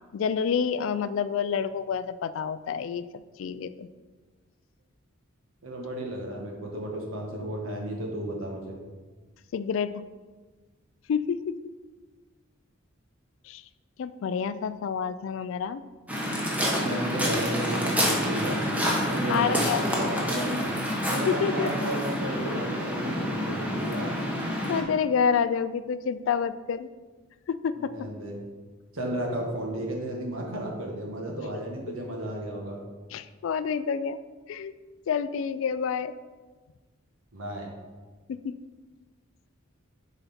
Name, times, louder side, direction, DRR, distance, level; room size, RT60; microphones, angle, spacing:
voice 1, 0.1-3.0 3.4-3.9 9.5-9.9 11.1-11.5 13.5-13.6 14.0-15.8 19.3-19.8 21.3-21.7 24.3-24.4 24.7-26.9 27.5-27.9 31.9-32.0 33.1-34.2 34.5-34.7 35.1-36.1 38.3-38.6, left 6 dB, 65° left, 14 dB, 0.3 m, -28 dB
voice 2, 5.6-8.8 16.8-18.6 19.1-20.7 21.1-24.1 27.8-28.3 28.9-32.8 37.3-37.7, right 1 dB, 75° right, 0 dB, 1.4 m, -33 dB
Waves surf, 16.1-24.8, equal, 5° right, 0.9 m, -28 dB
6.9 x 4.2 x 4.2 m, 1.3 s
head